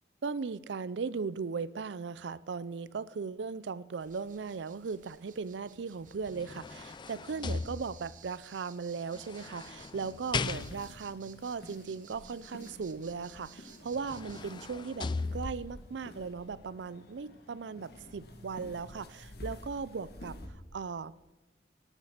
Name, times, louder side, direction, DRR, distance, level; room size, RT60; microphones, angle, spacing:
voice 1, 0.2-20.4 20.7-21.1, right 5 dB, 75° right, 18 dB, 0.5 m, -38 dB
sound 1, 4.0-14.5, right 8 dB, 45° right, 0.9 m, -57 dB
sound 2, 6.1-8.3 9.1-11.1 13.4-13.5 13.9-15.9 16.4-16.5, left 4 dB, 25° left, 0.3 m, -38 dB
sound 3, 10.3-20.5, left 1 dB, 60° left, 1.9 m, -50 dB
18.5 x 7.3 x 6.6 m, 1.1 s
head